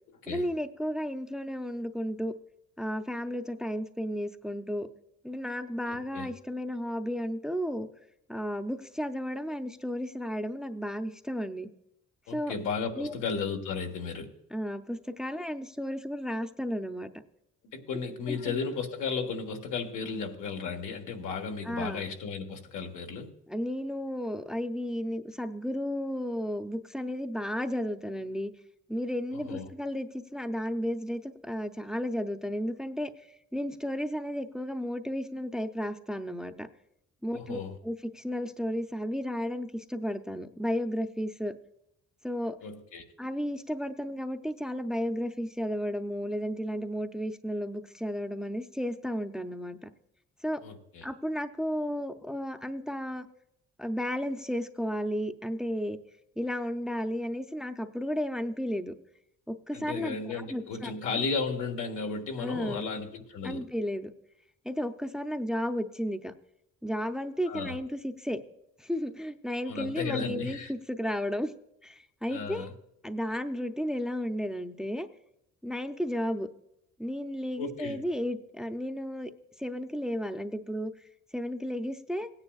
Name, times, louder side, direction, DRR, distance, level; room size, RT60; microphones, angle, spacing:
voice 1, 0.3-2.3 2.8-4.9 5.2-7.9 8.3-11.7 12.3-12.5 13.0-13.2 14.5-17.1 18.3-18.6 21.6-22.0 23.5-28.5 28.9-33.1 33.5-36.7 37.2-41.6 42.2-42.6 43.2-49.9 50.4-50.6 51.0-53.3 53.8-56.0 56.4-58.9 59.5-61.2 62.4-62.8 63.4-64.1 64.6-66.3 66.8-68.4 68.8-71.5 71.8-72.7 73.0-75.1 75.6-76.5 77.0-79.3 79.6-80.9 81.3-82.3, equal, ahead, 0.6 m, -33 dB
voice 2, 5.9-6.3 12.3-14.3 17.7-23.3 29.3-29.6 37.3-37.7 42.6-43.0 50.6-51.0 59.7-63.6 67.5-67.8 69.7-70.7 72.3-72.7 77.6-78.0, left 5 dB, 90° left, 1.6 m, -34 dB
18.0 x 9.7 x 2.4 m
cardioid pair, 90°, 30 cm